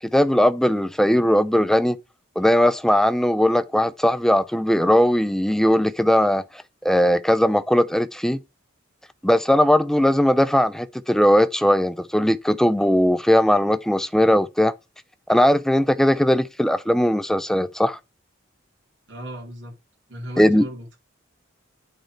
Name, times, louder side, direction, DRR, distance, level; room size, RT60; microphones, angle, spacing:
voice 1, 0.1-2.0 2.4-6.4 6.8-8.4 9.2-14.7 15.3-18.0 20.4-20.7, equal, ahead, 0.4 m, -19 dB
voice 2, 19.1-19.7 20.1-21.0, right 1 dB, 60° right, 4.1 m, -36 dB
9.0 x 4.4 x 6.4 m
head